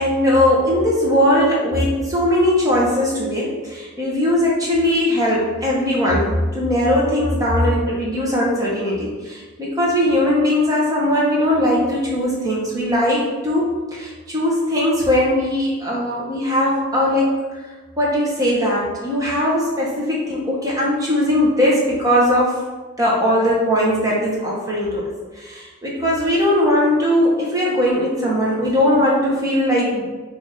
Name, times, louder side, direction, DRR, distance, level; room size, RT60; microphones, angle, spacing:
voice 1, 0.0-17.4 18.0-22.5 23.0-25.0 25.4-30.0, left 1 dB, 15° right, -5 dB, 0.9 m, -19 dB
4.0 x 2.7 x 4.8 m, 1.3 s
head